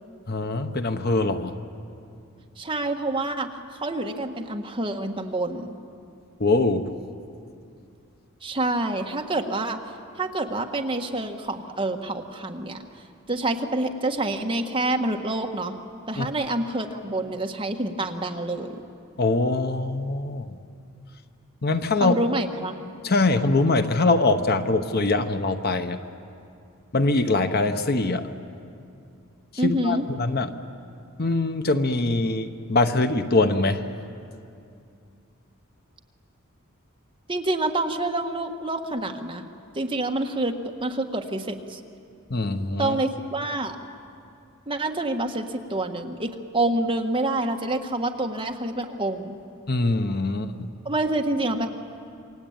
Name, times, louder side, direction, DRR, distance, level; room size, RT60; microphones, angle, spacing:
voice 1, 0.3-1.5 6.4-6.9 16.2-16.3 19.2-20.6 21.6-22.2 23.0-26.0 26.9-28.3 29.6-30.5 31.2-33.8 42.3-43.0 49.7-50.7, left 2 dB, 45° left, 8 dB, 1.0 m, -23 dB
voice 2, 2.6-3.5 3.8-5.7 8.4-9.8 10.2-12.9 13.3-15.8 16.1-18.8 22.0-22.8 29.6-30.1 37.3-39.5 39.7-41.8 42.8-43.8 44.7-49.4 50.8-51.7, right 2 dB, 25° right, 3 dB, 1.5 m, -27 dB
27.5 x 23.0 x 8.9 m, 2.5 s
head